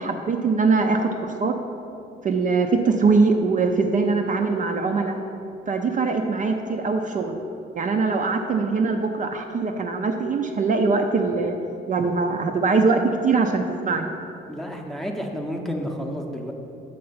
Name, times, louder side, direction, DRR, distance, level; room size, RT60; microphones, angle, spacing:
voice 1, 0.0-1.6 2.2-5.2 5.7-7.4 7.7-11.6 11.9-14.1, right 4 dB, 40° right, 4 dB, 0.4 m, -22 dB
voice 2, 14.5-16.5, equal, ahead, 1 dB, 0.6 m, -30 dB
6.6 x 3.3 x 5.5 m, 2.7 s
cardioid pair, 90°, 20 cm